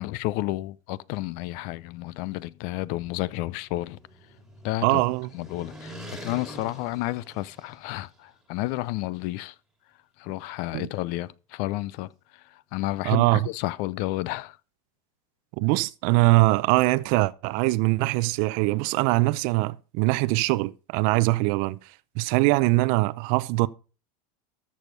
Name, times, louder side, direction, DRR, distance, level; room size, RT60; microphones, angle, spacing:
voice 1, 0.0-4.0 4.6-5.0 5.3-9.5 10.2-14.6, left 18 dB, 50° left, 0.6 m, -31 dB
sound 1, 3.3-8.1, right 1 dB, ahead, 2.1 m, -44 dB
voice 2, 4.8-5.3 10.7-10.9 13.0-13.5 15.6-21.8 22.2-23.7, right 21 dB, 55° right, 0.6 m, -22 dB
13.5 x 6.4 x 5.3 m
supercardioid pair, 130°, 18 cm